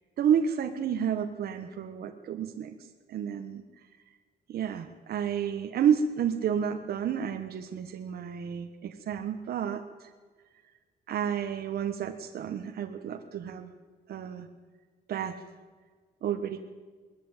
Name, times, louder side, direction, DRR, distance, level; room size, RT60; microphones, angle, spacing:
voice 1, 0.2-2.7 3.1-3.6 4.5-10.1 11.1-13.7 14.1-14.5 15.1-15.4 16.2-16.6, right 8 dB, 65° right, 6 dB, 1.3 m, -30 dB
21.0 x 14.0 x 9.0 m, 1.5 s
cardioid pair, 150°, 18 cm